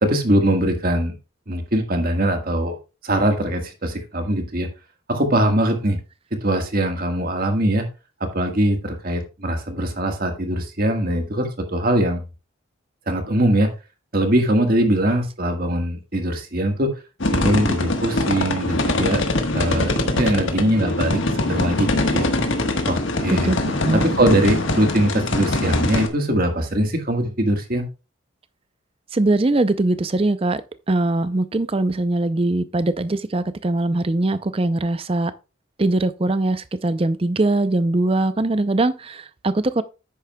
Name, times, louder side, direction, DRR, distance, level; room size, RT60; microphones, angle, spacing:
voice 1, 0.0-1.1 1.5-2.7 3.0-4.7 5.1-6.0 6.4-7.8 8.2-12.2 13.1-13.7 14.1-16.9 17.3-19.2 19.5-22.3 22.9-23.5 23.9-27.9, right 1 dB, 45° right, 1.6 m, -21 dB
sound 1, 17.2-26.1, left 2 dB, 70° left, 1.4 m, -23 dB
voice 2, 23.4-24.0 29.1-30.6 30.9-35.3 35.8-39.8, right 2 dB, 25° right, 0.5 m, -21 dB
10.0 x 8.5 x 2.3 m
head